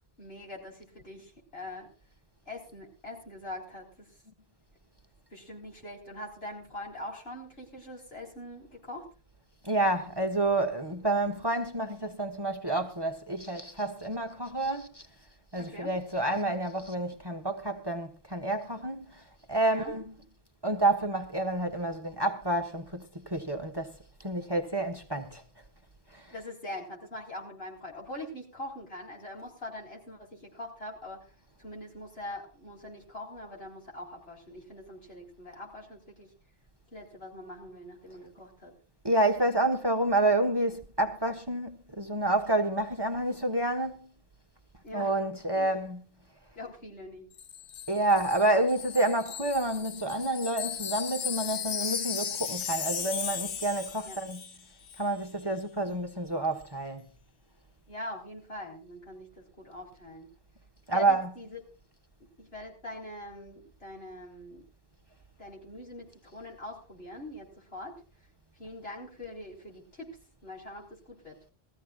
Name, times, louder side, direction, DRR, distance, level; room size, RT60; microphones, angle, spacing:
voice 1, 0.2-1.9 2.5-4.1 5.3-9.1 15.6-15.9 19.7-20.0 26.3-31.2 31.6-36.3 36.9-38.7 44.8-45.2 45.6-45.7 46.5-47.3 54.0-54.2 57.9-60.3 60.9-61.6 62.4-64.6 65.4-67.9 68.6-71.4, left 1 dB, 70° left, 4.9 m, -43 dB
voice 2, 9.6-15.1 15.5-19.2 19.5-20.2 20.6-25.4 26.1-26.4 39.0-44.1 44.9-46.0 47.9-54.4 55.0-57.1 60.9-61.4, right 2 dB, 25° right, 1.2 m, -29 dB
Wind chime, 47.4-54.6 54.9-55.1, left 7 dB, 90° left, 1.1 m, -36 dB
21.5 x 14.5 x 2.4 m
omnidirectional pair, 1.1 m